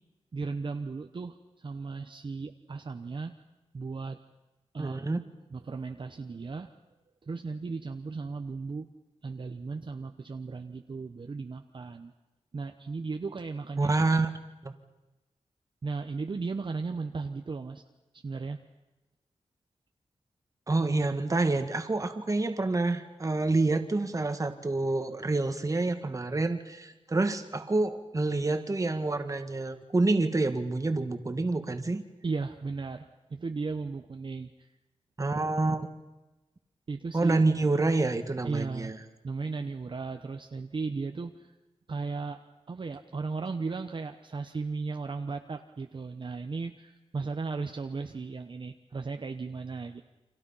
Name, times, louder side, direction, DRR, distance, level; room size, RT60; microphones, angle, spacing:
voice 1, 0.3-3.3 3.7-4.2 4.7-5.0 5.5-6.7 7.2-8.9 9.2-12.1 12.5-13.9 15.8-17.8 18.2-18.6 32.2-34.7 36.9-37.4 38.4-38.9 39.2-41.5 41.9-42.4 42.7-50.0, right 4 dB, 45° right, 5 dB, 1.0 m, -36 dB
voice 2, 4.8-5.2 13.8-14.3 14.6-14.7 20.7-32.0 35.2-35.9 37.1-39.0, right 2 dB, 30° right, 8 dB, 1.7 m, -27 dB
30.0 x 26.0 x 5.7 m, 1.1 s
wide cardioid pair, 135°, 12 cm